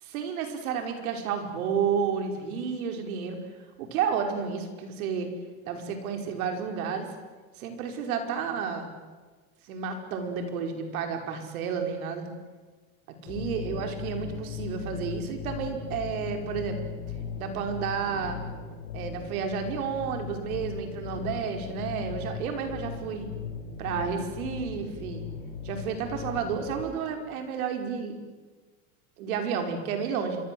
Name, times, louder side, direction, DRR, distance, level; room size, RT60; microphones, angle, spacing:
voice 1, 0.0-3.4 3.8-5.3 5.7-7.1 7.6-8.9 9.7-12.3 13.2-16.8 17.4-18.4 18.9-23.3 23.8-25.3 25.6-28.2 29.2-30.4, right 6 dB, 85° right, 5 dB, 5.3 m, -31 dB
sound 1, 13.3-26.8, left 6 dB, 65° left, 4.8 m, -38 dB
26.5 x 24.0 x 7.9 m, 1.3 s
supercardioid pair, 150°, 42 cm